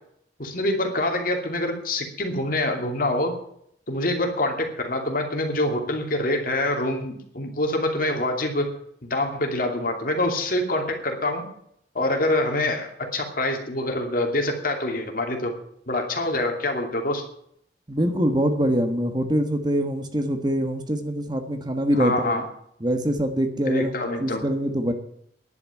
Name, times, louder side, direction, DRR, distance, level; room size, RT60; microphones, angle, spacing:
voice 1, 0.4-3.4 3.9-8.7 9.0-11.5 11.9-15.6 15.9-17.2 22.0-22.4 23.6-24.4, left 1 dB, 50° left, 3 dB, 2.7 m, -25 dB
voice 2, 17.9-22.4 22.8-23.9 24.2-24.9, equal, 25° right, 7 dB, 1.4 m, -24 dB
11.0 x 9.0 x 9.0 m, 0.70 s
head